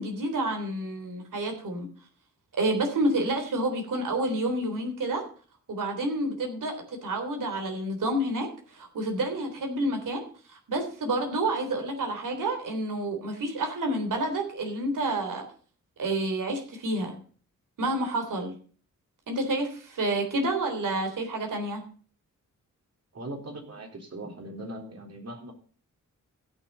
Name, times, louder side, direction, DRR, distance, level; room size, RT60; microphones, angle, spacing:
voice 1, 0.0-1.9 2.5-5.2 5.7-10.2 10.5-15.4 16.0-17.2 17.8-18.5 19.3-21.8, right 1 dB, 80° right, 4 dB, 3.6 m, -29 dB
voice 2, 23.1-25.5, right 1 dB, 55° right, 3 dB, 3.7 m, -40 dB
16.0 x 6.4 x 5.4 m, 0.42 s
wide cardioid pair, 90°, 31 cm